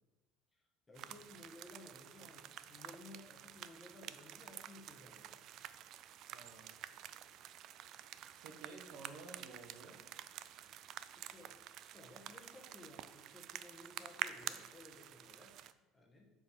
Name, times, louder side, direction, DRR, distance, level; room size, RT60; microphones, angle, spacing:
voice 1, 0.5-5.4 11.1-15.6 15.9-16.3, left 2 dB, 15° left, 0 dB, 1.4 m, -57 dB
sound 1, 0.9-15.7, right 11 dB, 50° right, 0.3 m, -49 dB
voice 2, 6.3-6.7 8.4-10.0, right 3 dB, 75° right, 3 dB, 1.2 m, -53 dB
7.6 x 4.8 x 4.5 m, 1.1 s
cardioid pair, 135°, 0 cm